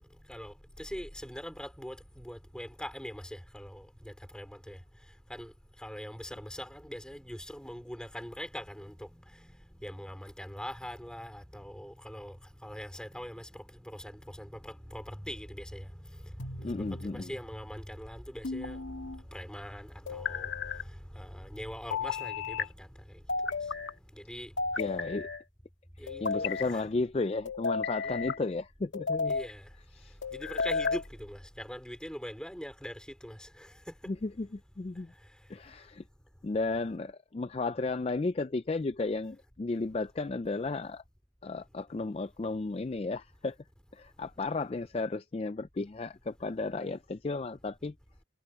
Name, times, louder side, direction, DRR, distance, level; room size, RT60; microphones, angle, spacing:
voice 1, 0.3-4.8 5.3-5.5 5.8-9.5 9.8-12.4 12.6-16.3 16.7-18.8 19.3-20.5 21.1-23.2 24.1-24.5 26.0-26.8 28.0-28.3 29.3-29.6 30.3-33.7, equal, 5° left, 4.1 m, -42 dB
sound 1, 16.4-17.1 18.4-19.2 20.1-20.8 21.9-22.7 23.3-23.9 24.6-25.4 26.1-26.7 27.4-28.4 28.9-29.5 30.2-31.0, left 4 dB, 75° left, 2.0 m, -33 dB
voice 2, 16.6-17.3 24.8-25.3 26.0-29.3 29.9-30.2 34.1-35.1 35.5-36.0 36.4-41.0 41.4-43.6 43.9-47.9, left 3 dB, 30° left, 0.4 m, -34 dB
head